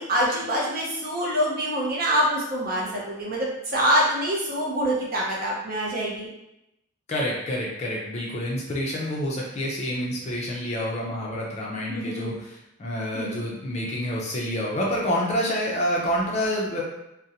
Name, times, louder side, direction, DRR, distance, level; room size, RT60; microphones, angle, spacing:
voice 1, 0.0-6.3 11.9-12.3 13.1-13.4, equal, 40° right, -4 dB, 0.6 m, -25 dB
voice 2, 7.1-16.8, equal, 30° left, -3 dB, 0.4 m, -28 dB
2.5 x 2.0 x 2.7 m, 0.86 s
head